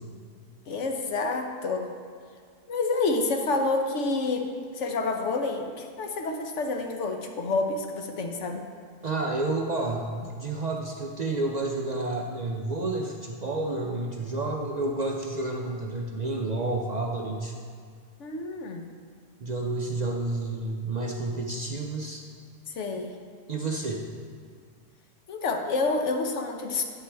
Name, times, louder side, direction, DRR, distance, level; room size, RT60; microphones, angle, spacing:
voice 1, 0.7-1.9 2.7-8.7 18.2-18.9 22.7-23.1 25.3-26.8, left 3 dB, 70° left, 4 dB, 1.1 m, -28 dB
voice 2, 9.0-17.5 19.4-22.2 23.5-24.0, right 2 dB, 50° right, 1 dB, 0.5 m, -30 dB
9.9 x 8.1 x 3.4 m, 2.1 s
omnidirectional pair, 1.3 m